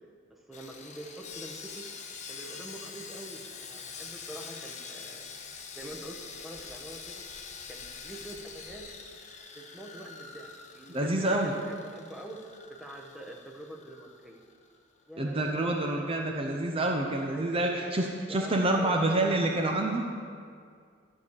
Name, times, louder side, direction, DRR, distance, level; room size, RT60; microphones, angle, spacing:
voice 1, 0.3-1.9 2.3-5.3 5.7-7.2 7.7-8.9 9.6-14.4 15.1-16.0 17.3-19.0, right 1 dB, ahead, 0 dB, 1.0 m, -45 dB
Sawing, 0.5-14.8 15.0-15.2 15.7-15.8, left 5 dB, 35° left, 0.8 m, -45 dB
voice 2, 10.9-11.5 15.2-20.1, right 1 dB, 30° right, 1 dB, 0.6 m, -27 dB
13.5 x 4.7 x 7.2 m, 2.2 s
head